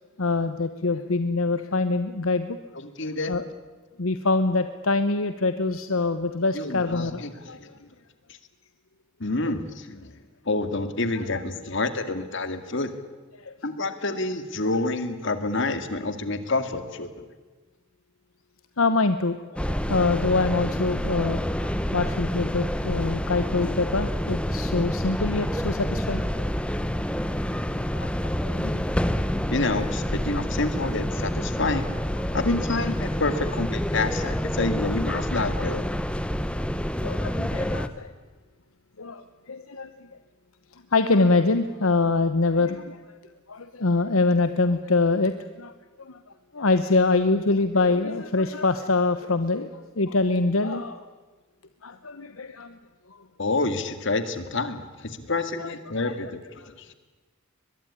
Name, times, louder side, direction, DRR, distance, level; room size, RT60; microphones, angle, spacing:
voice 1, 0.0-2.6 3.3-3.4 4.0-7.6 9.5-9.6 13.3-13.5 18.8-26.5 27.9-28.6 32.2-32.4 35.6-35.8 37.0-38.1 39.0-40.1 40.9-43.0 43.5-45.7 46.0-46.2 46.5-49.7 50.0-51.0 51.8-52.8 55.6-56.3 56.6-56.7, left 3 dB, 80° left, 10 dB, 1.1 m, -25 dB
voice 2, 2.8-3.3 6.5-7.7 9.2-10.1 10.5-12.9 13.6-17.2 28.6-28.8 29.5-31.8 32.3-35.8 53.4-56.4 56.7-56.9, left 3 dB, 60° left, 10 dB, 2.2 m, -28 dB
sound 1, 19.6-37.9, equal, 5° left, 1.0 m, -28 dB
23.0 x 21.5 x 10.0 m, 1.3 s
head